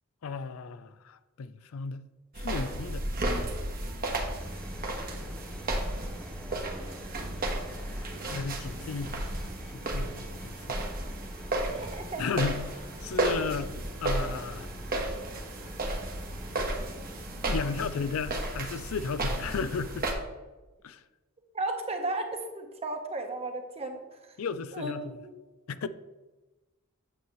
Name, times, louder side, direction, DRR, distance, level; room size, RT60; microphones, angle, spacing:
voice 1, 0.2-2.0 2.4-3.1 8.2-9.5 9.9-10.9 12.2-13.7 14.0-14.7 17.5-20.1 20.8-21.0 24.4-25.2 25.7-25.9, left 5 dB, 75° left, 0.4 m, -34 dB
sound 1, 2.3-20.1, right 1 dB, 45° right, 1.2 m, -33 dB
sound 2, 4.4-18.1, equal, 5° left, 0.5 m, -47 dB
voice 2, 11.6-12.3 21.5-24.0 24.7-25.3, right 2 dB, 30° right, 1.1 m, -34 dB
8.9 x 6.9 x 3.1 m
head